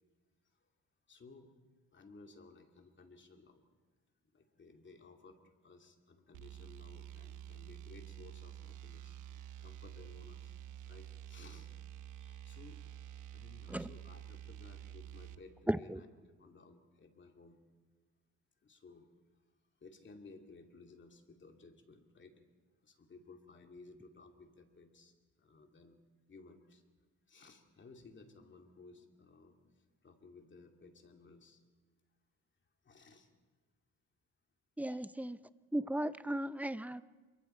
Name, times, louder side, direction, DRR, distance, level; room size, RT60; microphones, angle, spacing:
voice 1, 1.1-1.5 1.9-3.6 4.3-5.4 5.6-10.5 10.9-12.8 13.3-16.1 16.4-17.6 18.6-19.1 19.8-22.4 22.8-25.1 25.4-26.0 26.3-26.8 27.3-29.7 30.0-31.6 32.8-33.3 34.8-35.1, left 3 dB, 40° left, 2.6 m, -58 dB
sound 1, 6.3-15.4, right 10 dB, 85° right, 1.0 m, -49 dB
voice 2, 15.7-16.0 34.8-35.4 35.7-37.0, right 1 dB, 5° right, 0.6 m, -36 dB
27.5 x 23.5 x 4.5 m
cardioid pair, 90°, 30 cm